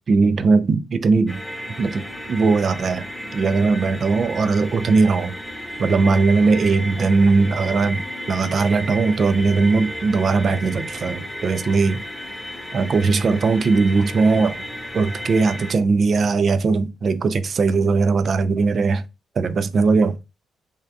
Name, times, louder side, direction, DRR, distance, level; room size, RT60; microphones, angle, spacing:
voice 1, 0.1-1.4 1.8-3.1 3.3-5.3 5.8-12.0 12.7-14.6 14.9-19.0 19.4-20.2, right 4 dB, 45° right, 0.5 m, -19 dB
sound 1, 1.3-15.7, equal, ahead, 1.1 m, -33 dB
5.6 x 3.4 x 2.3 m
figure-of-eight pair, 40°, 0 cm